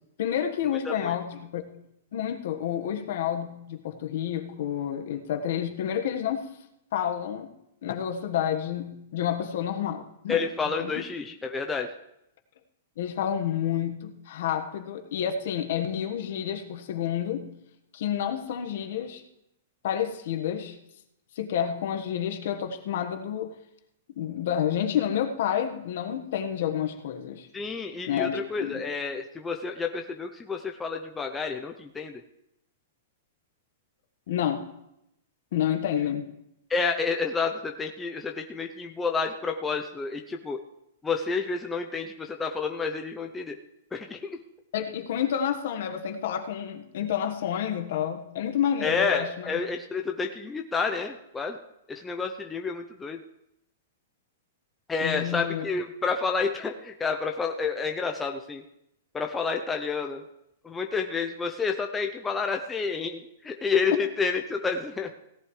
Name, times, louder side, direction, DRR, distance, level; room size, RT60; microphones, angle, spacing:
voice 1, 0.2-1.6 2.1-6.5 6.9-7.5 7.8-10.4 10.8-11.0 13.0-17.5 17.9-19.2 19.8-20.7 21.3-23.5 24.2-27.5 28.1-28.8 34.3-34.7 35.5-36.3 44.7-49.6 55.0-55.6, left 9 dB, 55° left, 6 dB, 1.4 m, -29 dB
voice 2, 0.8-1.2 10.3-11.9 27.5-32.2 36.7-40.6 41.0-43.6 43.9-44.4 48.8-51.6 51.9-53.2 54.9-58.6 59.1-60.2 60.6-65.1, left 5 dB, 10° left, 3 dB, 0.6 m, -29 dB
17.0 x 11.0 x 3.2 m, 0.82 s
hypercardioid pair, 160°, 0 cm